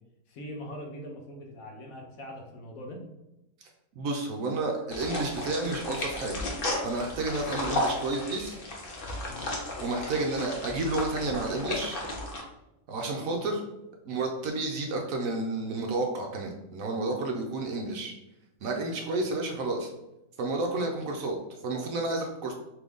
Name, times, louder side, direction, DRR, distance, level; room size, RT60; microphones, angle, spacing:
voice 1, 0.3-3.0 9.2-9.5 13.0-13.3 18.7-19.2, equal, 65° left, 1 dB, 1.1 m, -43 dB
voice 2, 3.6-6.4 6.8-8.6 9.8-12.0 12.9-13.6 14.1-18.1 18.6-19.9 20.4-21.4 21.6-22.5, right 2 dB, 70° right, 2 dB, 0.9 m, -31 dB
sound 1, 4.9-12.4, left 2 dB, 45° left, 0.8 m, -34 dB
3.7 x 3.0 x 3.5 m, 0.91 s
omnidirectional pair, 1.7 m